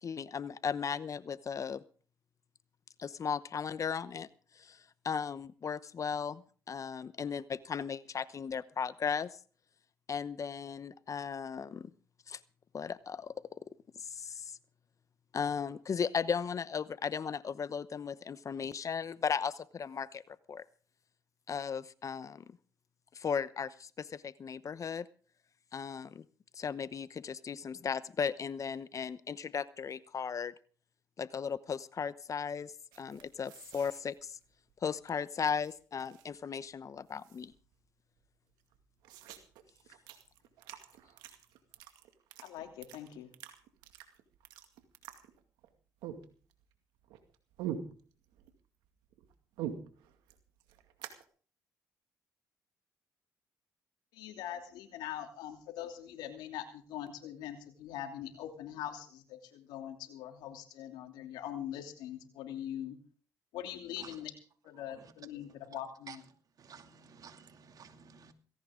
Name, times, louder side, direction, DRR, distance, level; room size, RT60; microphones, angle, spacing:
voice 1, 0.0-1.8 3.0-4.3 4.6-9.4 10.1-11.9 12.3-12.4 12.7-13.6 14.0-14.6 15.3-20.6 21.5-22.4 23.1-25.1 25.7-26.2 26.5-30.5 31.2-32.7 33.0-34.4 34.8-37.5, left 6 dB, 50° left, 16 dB, 0.9 m, -36 dB
sound 1, 32.9-35.1 35.4-36.5 36.7-36.8 37.1-37.8 38.2-38.3 38.5-45.7 46.0-46.7 47.0-48.5 48.8-51.2, right 9 dB, 90° right, 2.1 m, -46 dB
voice 2, 42.4-43.3 54.1-63.0 63.5-64.3 64.6-66.2, left 11 dB, 85° left, 5 dB, 2.9 m, -42 dB
voice 3, 66.6-68.3, right 6 dB, 60° right, 7 dB, 2.6 m, -53 dB
18.0 x 17.0 x 3.8 m, 0.42 s
supercardioid pair, 60°, 7 cm